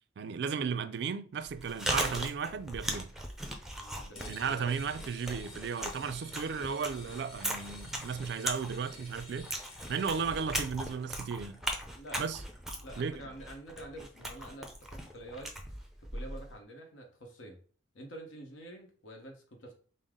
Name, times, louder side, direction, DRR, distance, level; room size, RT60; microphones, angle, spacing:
voice 1, 0.2-3.1 4.3-9.5 9.9-11.6 12.2-12.4 13.0-13.2, right 6 dB, 60° right, 0.3 m, -35 dB
Chewing mastication, 1.4-16.5, right 1 dB, ahead, 0.5 m, -39 dB
voice 2, 3.8-4.8 12.0-12.2 12.8-15.5 16.0-17.6 17.9-19.7, right 1 dB, 80° left, 1.0 m, -47 dB
sound 1, 4.1-10.7, left 2 dB, 30° left, 1.2 m, -51 dB
5.3 x 2.0 x 3.6 m
head